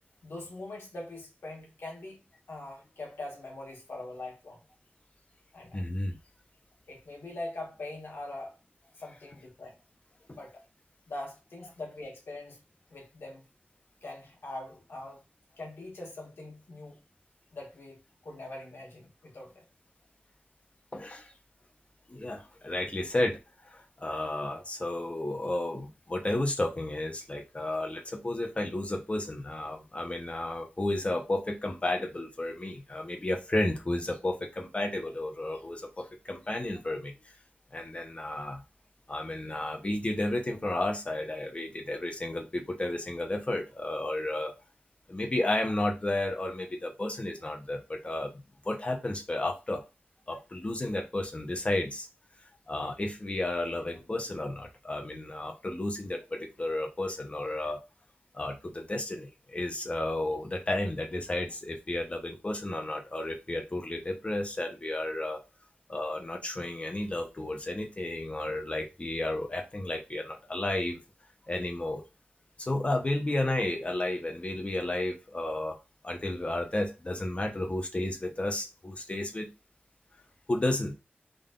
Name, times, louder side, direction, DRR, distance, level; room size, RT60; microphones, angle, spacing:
voice 1, 0.2-2.2 2.5-4.6 5.5-5.8 6.9-8.5 9.0-9.8 10.3-10.5 11.1-12.6 12.9-13.4 14.0-15.2 15.6-17.0 17.5-19.7, left 2 dB, 85° left, 1.4 m, -42 dB
voice 2, 5.7-6.2 10.3-10.4 20.9-21.3 22.1-37.2 37.7-38.6 39.1-44.5 45.1-49.8 50.3-52.1 52.7-57.8 58.3-65.4 65.9-71.0 71.5-72.0 72.6-75.8 76.0-79.5 80.5-80.9, left 1 dB, 35° left, 0.8 m, -32 dB
3.8 x 2.6 x 3.7 m
wide cardioid pair, 90°, 4 cm